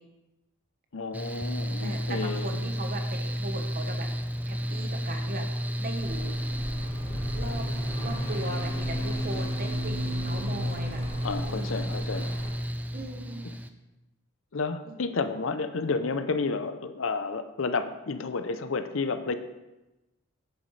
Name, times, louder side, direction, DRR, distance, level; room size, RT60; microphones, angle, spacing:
voice 1, 0.9-2.5 11.2-12.3 14.5-19.3, left 4 dB, 75° left, 11 dB, 0.6 m, -31 dB
Mechanical fan, 1.1-13.7, equal, 10° right, 0.4 m, -32 dB
voice 2, 1.8-4.1 4.5-5.5 5.8-6.3 7.3-7.7 8.0-11.0 11.4-11.9 12.9-13.5 14.8-15.0, right 1 dB, 45° right, 4 dB, 1.2 m, -38 dB
sound 1, 4.3-11.4, equal, 65° right, 1.8 m, -39 dB
sound 2, 6.0-12.5, equal, 25° left, 3.1 m, -41 dB
10.5 x 9.2 x 3.3 m, 1.0 s
head